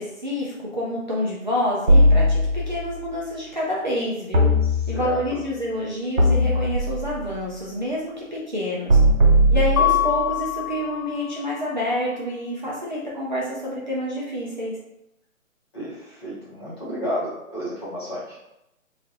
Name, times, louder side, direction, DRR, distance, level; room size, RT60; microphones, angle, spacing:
voice 1, 0.0-4.5 4.9-9.0 9.5-14.7, left 1 dB, 35° right, -6 dB, 0.5 m, -28 dB
sound 1, 1.9-2.9 4.3-5.3 6.2-7.2 8.9-10.3, equal, 80° right, 1.4 m, -18 dB
voice 2, 4.6-5.2 9.8-9.9 15.7-18.4, equal, 20° left, -9 dB, 0.9 m, -32 dB
Mallet percussion, 9.8-11.6, left 13 dB, 85° left, 0.5 m, -24 dB
3.1 x 2.4 x 3.8 m, 0.87 s
hypercardioid pair, 165°, 42 cm